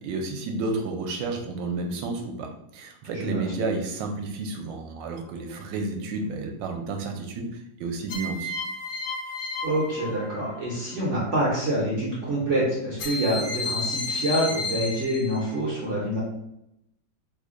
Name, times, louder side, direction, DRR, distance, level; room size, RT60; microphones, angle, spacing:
voice 1, 0.0-7.5 7.8-8.5, right 3 dB, 80° right, 3 dB, 1.2 m, -31 dB
voice 2, 3.1-3.4 9.6-16.2, right 1 dB, 55° right, -6 dB, 0.8 m, -26 dB
sound 1, 5.0-5.6 8.1-10.7 13.0-15.6, left 3 dB, 70° left, 1.3 m, -32 dB
3.3 x 2.1 x 3.6 m, 0.82 s
omnidirectional pair, 2.0 m